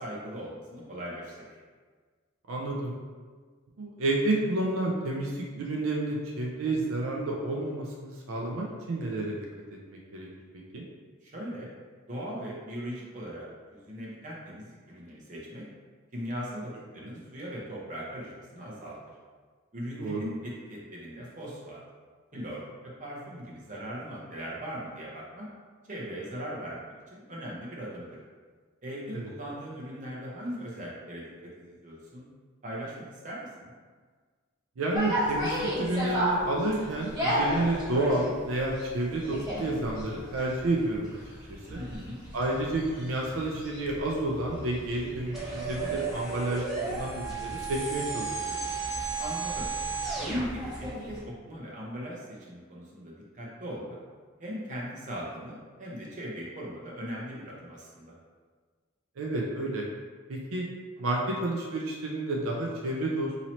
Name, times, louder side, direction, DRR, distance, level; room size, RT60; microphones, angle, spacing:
voice 1, 0.0-1.6 11.2-11.7 12.1-13.5 13.7-15.6 16.1-19.0 19.7-21.8 22.3-25.5 25.9-28.1 28.8-32.3 32.6-33.7 41.7-42.2 49.2-49.7 50.1-54.0 54.4-58.1, equal, 35° right, -5 dB, 0.8 m, -39 dB
voice 2, 2.5-2.9 3.8-9.4 9.9-10.3 10.7-10.8 17.0-17.1 20.0-20.2 29.1-29.3 34.8-41.2 41.5-41.8 42.3-48.5 59.2-59.8 60.3-60.7 61.0-63.3, right 2 dB, 75° right, -2 dB, 0.5 m, -30 dB
sound 1, 34.9-51.2, equal, 20° right, 1.2 m, -35 dB
sound 2, 45.3-50.5, right 5 dB, ahead, 0.6 m, -33 dB
3.0 x 2.8 x 4.2 m, 1.5 s
head